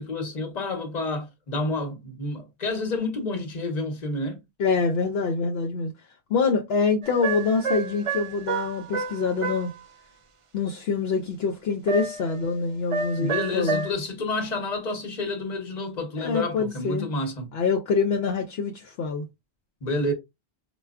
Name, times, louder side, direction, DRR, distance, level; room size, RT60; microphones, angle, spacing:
voice 1, 0.0-4.4 13.1-17.5 19.8-20.1, left 2 dB, 40° left, 0.9 m, -29 dB
voice 2, 4.6-5.9 6.3-9.7 10.5-13.8 16.2-17.1 17.5-19.3, left 4 dB, 65° left, 0.8 m, -25 dB
sound 1, 7.0-9.7 11.9-12.4 12.9-13.9, right 4 dB, 60° right, 0.3 m, -29 dB
4.4 x 2.2 x 2.3 m
omnidirectional pair, 1.2 m